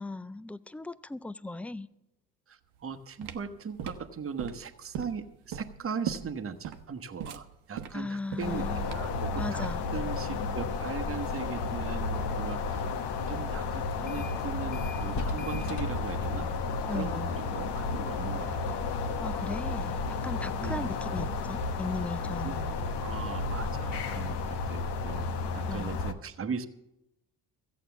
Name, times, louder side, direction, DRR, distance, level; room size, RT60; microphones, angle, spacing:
voice 1, 0.0-1.9 7.9-8.9 9.4-9.8 16.9-17.3 19.2-22.7 25.7-26.0, left 2 dB, 5° left, 0.4 m, -37 dB
voice 2, 2.5-12.8 13.3-16.5 16.9-18.8 20.6-20.9 22.4-22.6 23.0-26.7, right 6 dB, 30° right, 1.1 m, -39 dB
sound 1, 2.8-9.3, right 9 dB, 70° right, 1.0 m, -40 dB
sound 2, 8.4-26.1, left 4 dB, 70° left, 1.1 m, -32 dB
sound 3, 13.9-14.4 14.7-23.2, left 2 dB, 45° left, 1.5 m, -43 dB
14.0 x 8.4 x 7.0 m
supercardioid pair, 60°, 42 cm